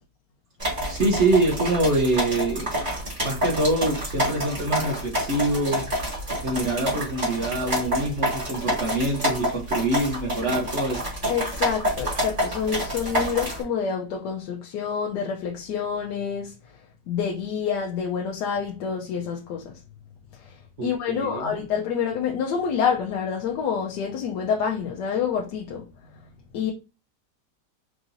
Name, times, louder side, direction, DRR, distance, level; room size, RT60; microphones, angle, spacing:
sound 1, 0.6-13.6, equal, 30° right, 2.0 m, -28 dB
voice 1, 0.9-2.7 3.2-5.8 6.4-11.0 20.8-21.4, right 2 dB, 50° right, 1.0 m, -25 dB
voice 2, 11.3-16.5 17.1-19.8 20.4-26.7, left 7 dB, 75° left, 1.2 m, -28 dB
4.7 x 2.9 x 2.6 m
omnidirectional pair, 1.9 m